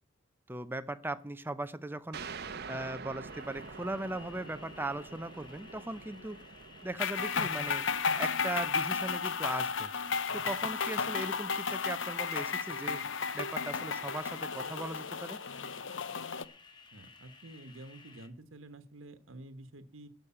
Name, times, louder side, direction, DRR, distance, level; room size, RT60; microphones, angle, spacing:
voice 1, 0.5-6.4 6.8-7.9 8.2-9.9 10.3-13.0 13.3-15.4, right 1 dB, 10° right, 12 dB, 0.6 m, -38 dB
sound 1, 2.1-11.3, right 5 dB, 50° right, 0.8 m, -48 dB
sound 2, 3.3-18.3, left 4 dB, 25° left, 1.3 m, -56 dB
sound 3, 7.0-16.4, left 5 dB, 70° left, 0.7 m, -33 dB
voice 2, 16.9-20.1, right 1 dB, 80° right, 11 dB, 1.3 m, -49 dB
11.5 x 6.6 x 8.7 m, 0.41 s
head